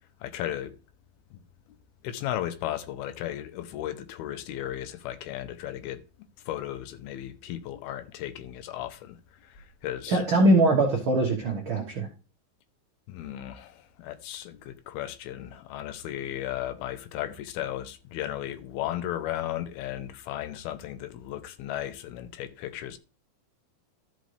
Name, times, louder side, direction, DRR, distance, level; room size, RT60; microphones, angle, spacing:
voice 1, 0.2-0.7 1.3-1.4 2.0-6.0 6.5-10.2 13.1-23.0, left 12 dB, 85° left, 2.6 m, -35 dB
voice 2, 10.1-12.1, right 1 dB, 75° right, 1.1 m, -22 dB
13.5 x 5.2 x 3.3 m
omnidirectional pair, 4.5 m